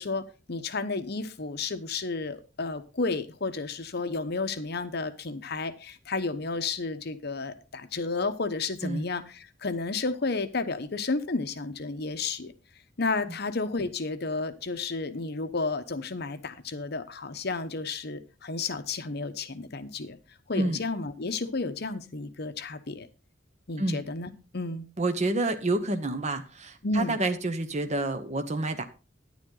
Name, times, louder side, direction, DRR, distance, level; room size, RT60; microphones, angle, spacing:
voice 1, 0.0-12.5 13.0-20.2 20.5-23.1 23.7-24.9 26.8-27.2, left 3 dB, 55° left, 0.9 m, -32 dB
voice 2, 25.0-28.8, right 2 dB, 35° right, 1.0 m, -28 dB
10.5 x 10.0 x 3.9 m
head